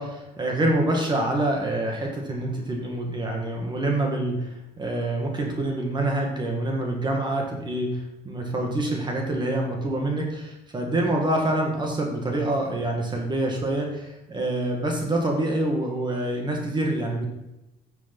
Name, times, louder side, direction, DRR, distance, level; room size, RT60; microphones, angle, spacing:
voice 1, 0.0-17.3, right 1 dB, 25° right, 1 dB, 1.9 m, -26 dB
10.0 x 6.5 x 5.4 m, 0.95 s
cardioid pair, 110°, 17 cm